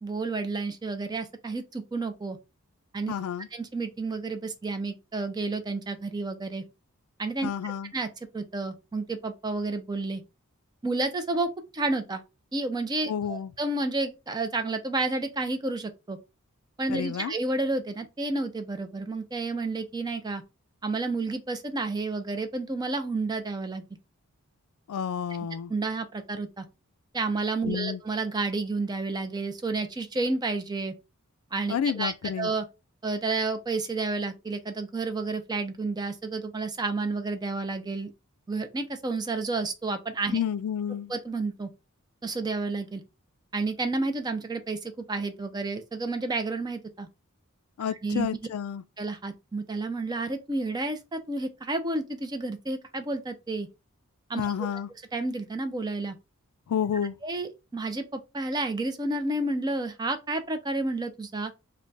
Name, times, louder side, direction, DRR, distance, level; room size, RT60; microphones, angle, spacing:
voice 1, 0.0-2.4 2.9-3.1 3.5-6.6 7.2-8.1 8.3-10.2 10.8-12.2 12.5-16.2 16.8-20.4 20.8-23.8 25.7-26.7 27.1-30.9 31.5-32.6 33.0-38.1 38.5-40.4 41.1-41.7 42.2-43.0 43.5-47.1 47.9-48.3 49.0-53.7 54.3-54.5 55.1-56.2 57.2-61.5, right 3 dB, 20° right, 0.4 m, -30 dB
voice 2, 3.1-3.5 7.4-7.9 13.1-13.5 16.9-17.3 24.9-25.7 27.6-28.0 31.7-32.5 40.3-41.1 47.8-48.8 54.4-54.9 56.7-57.2, left 8 dB, 75° left, 0.3 m, -30 dB
3.4 x 2.2 x 3.9 m
head